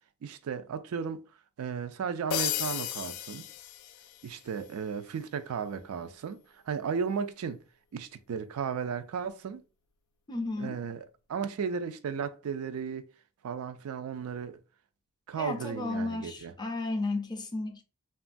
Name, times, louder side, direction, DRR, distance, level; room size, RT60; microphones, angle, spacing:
voice 1, 0.2-1.2 1.6-3.5 4.2-7.6 7.9-9.6 10.6-13.1 13.4-14.6 15.3-16.5, right 6 dB, 80° right, 0.4 m, -35 dB
sound 1, 2.3-4.4, left 11 dB, 85° left, 0.3 m, -34 dB
voice 2, 10.3-10.8 15.3-17.8, left 2 dB, 20° left, 0.4 m, -33 dB
3.0 x 2.3 x 2.5 m
head